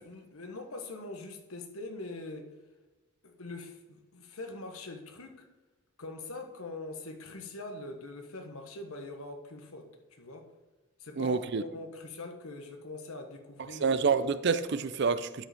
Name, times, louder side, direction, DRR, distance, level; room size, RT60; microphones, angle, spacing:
voice 1, 0.0-2.5 3.2-5.5 6.0-10.5 11.0-13.9, left 2 dB, 80° left, 1.3 m, -43 dB
voice 2, 11.2-11.6 13.8-15.5, right 5 dB, 50° right, 0.5 m, -27 dB
12.0 x 5.2 x 5.2 m
head